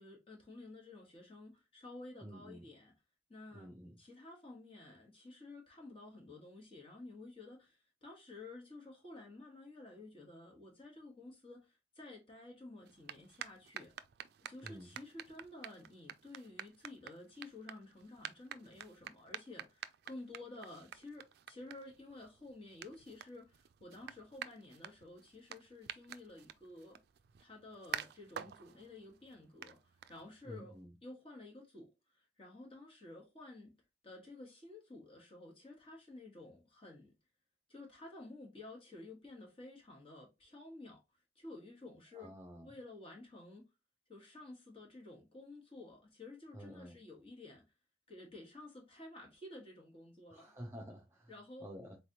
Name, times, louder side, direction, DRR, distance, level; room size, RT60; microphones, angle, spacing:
voice 1, 0.0-2.9 3.3-3.7 4.0-13.9 14.5-27.0 27.4-30.7 31.0-33.7 34.0-37.1 37.7-41.0 41.3-42.3 42.6-43.6 44.1-47.6 48.1-50.5 51.3-51.7, left 2 dB, 30° left, 1.5 m, -52 dB
voice 2, 2.2-2.6 3.5-4.0 14.6-14.9 30.4-30.9 42.2-42.7 46.5-47.0 50.3-51.3 51.6-52.0, equal, 15° right, 0.6 m, -50 dB
sound 1, 12.8-30.6, right 9 dB, 60° right, 0.3 m, -50 dB
4.0 x 3.3 x 2.8 m
head